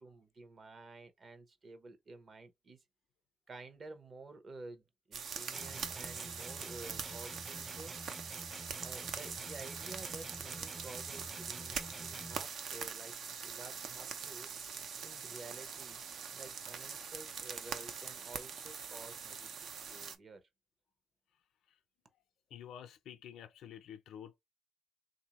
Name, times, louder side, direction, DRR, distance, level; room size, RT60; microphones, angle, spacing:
voice 1, 0.0-2.8 3.5-7.9 8.8-13.1 13.4-14.5 15.0-16.0 16.3-20.4, right 3 dB, 40° right, 0.9 m, -52 dB
sound 1, 5.1-20.2, right 6 dB, 65° right, 0.6 m, -43 dB
sound 2, 5.5-12.5, right 1 dB, 5° right, 0.5 m, -49 dB
voice 2, 22.5-24.4, left 9 dB, 75° left, 0.5 m, -49 dB
3.5 x 2.6 x 3.0 m
cardioid pair, 90°, 0 cm